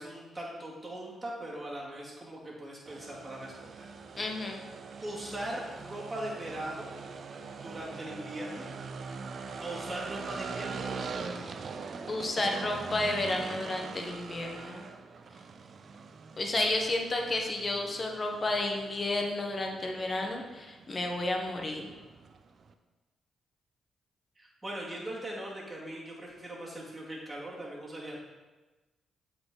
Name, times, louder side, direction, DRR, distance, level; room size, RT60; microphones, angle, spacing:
voice 1, 0.0-3.9 5.0-6.9 7.6-8.7 9.6-11.5 24.4-28.2, right 1 dB, 20° right, -5 dB, 2.2 m, -40 dB
sound 1, 2.9-22.7, right 5 dB, 55° right, 0.4 m, -43 dB
voice 2, 4.2-4.6 12.1-14.8 16.4-21.9, left 2 dB, 35° left, 2 dB, 1.1 m, -31 dB
7.7 x 4.0 x 3.9 m, 1.2 s
supercardioid pair, 65°, 0 cm